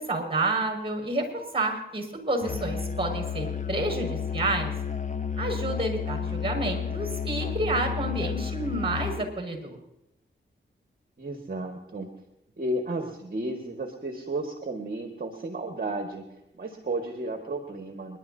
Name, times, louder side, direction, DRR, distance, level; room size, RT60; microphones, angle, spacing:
voice 1, 0.0-4.7 5.4-9.8, right 2 dB, 25° right, 3 dB, 5.4 m, -29 dB
Musical instrument, 2.4-9.3, left 6 dB, 35° left, 1.0 m, -32 dB
voice 2, 11.2-12.1 12.6-16.2 16.6-18.2, right 2 dB, 45° right, 2 dB, 1.8 m, -33 dB
29.5 x 11.5 x 2.8 m, 0.86 s
cardioid pair, 60°, 20 cm